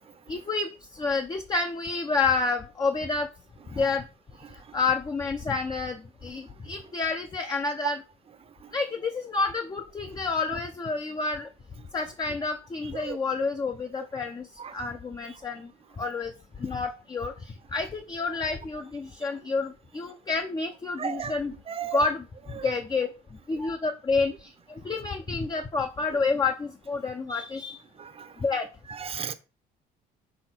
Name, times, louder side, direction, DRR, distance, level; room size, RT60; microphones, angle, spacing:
voice 1, 0.3-3.3 3.7-4.1 4.7-8.0 8.7-11.5 11.9-14.5 14.7-15.7 16.0-16.3 16.6-21.5 21.9-22.2 22.6-23.1 23.5-27.8 28.4-28.7, left 4 dB, 25° left, 0.7 m, -29 dB
voice 2, 21.0-21.4 21.7-22.1 22.5-22.8 28.0-28.4 28.9-29.3, right 7 dB, 35° right, 0.8 m, -35 dB
6.4 x 3.8 x 4.4 m
cardioid pair, 110°, 17 cm